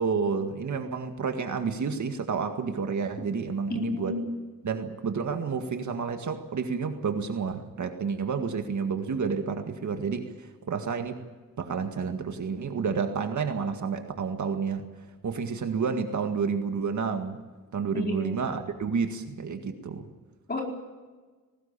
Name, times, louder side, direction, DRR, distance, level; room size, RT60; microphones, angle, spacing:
voice 1, 0.0-4.2 4.6-11.2 11.6-14.9 15.2-17.4 17.7-20.1, right 5 dB, 55° right, 6 dB, 1.9 m, -30 dB
voice 2, 3.7-4.2 17.9-18.4 20.5-20.6, left 2 dB, 30° left, 0 dB, 4.6 m, -31 dB
20.0 x 18.5 x 8.9 m, 1.3 s
wide cardioid pair, 175°, 34 cm